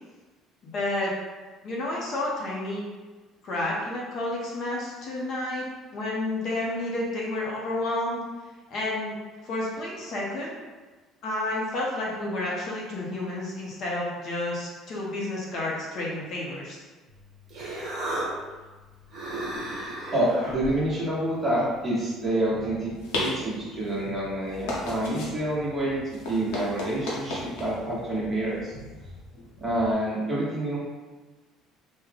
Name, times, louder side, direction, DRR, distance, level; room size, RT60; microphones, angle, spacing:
voice 1, 0.6-1.1 1.6-2.8 3.4-5.7 5.9-8.2 8.7-9.1 9.4-10.5 11.2-16.8, left 2 dB, 45° left, -4 dB, 0.7 m, -30 dB
Human voice, 17.1-22.3, right 1 dB, 45° right, 1.1 m, -36 dB
voice 2, 19.6-28.7 29.6-30.8, right 1 dB, 15° right, -7 dB, 1.0 m, -28 dB
sound 1, 22.4-29.9, left 2 dB, 90° left, 0.8 m, -36 dB
3.5 x 2.1 x 3.3 m, 1.3 s
cardioid pair, 160°, 0 cm